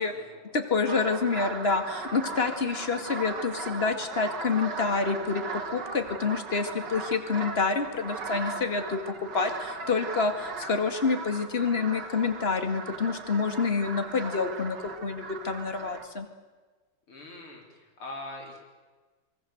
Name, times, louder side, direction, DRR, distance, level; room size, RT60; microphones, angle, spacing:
voice 1, 0.0-0.4 12.9-13.0 17.1-18.6, left 2 dB, 90° left, 1 dB, 5.1 m, -43 dB
voice 2, 0.5-5.4 5.7-16.3, left 4 dB, 30° left, 8 dB, 2.1 m, -28 dB
sound 1, 0.9-16.1, right 4 dB, 55° right, 2.3 m, -38 dB
25.0 x 23.5 x 7.9 m, 1.4 s
omnidirectional pair, 2.3 m